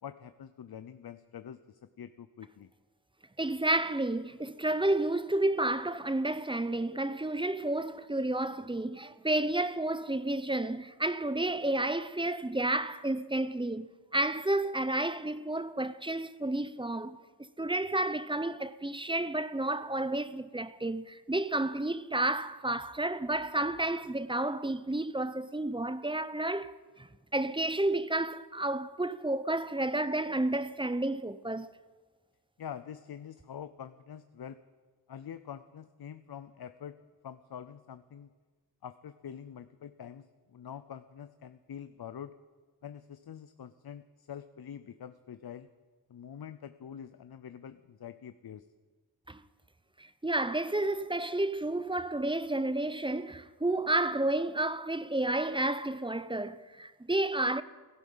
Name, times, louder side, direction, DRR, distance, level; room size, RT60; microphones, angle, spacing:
voice 1, 0.0-2.7 32.6-34.6 35.1-37.0 37.2-38.3 38.8-42.3 42.8-45.7 46.1-48.7, left 8 dB, 60° left, 0.7 m, -45 dB
voice 2, 3.4-17.2 17.6-31.7 49.3-49.4 50.0-57.6, right 2 dB, 10° right, 0.7 m, -31 dB
17.0 x 14.5 x 5.6 m
wide cardioid pair, 80°, 42 cm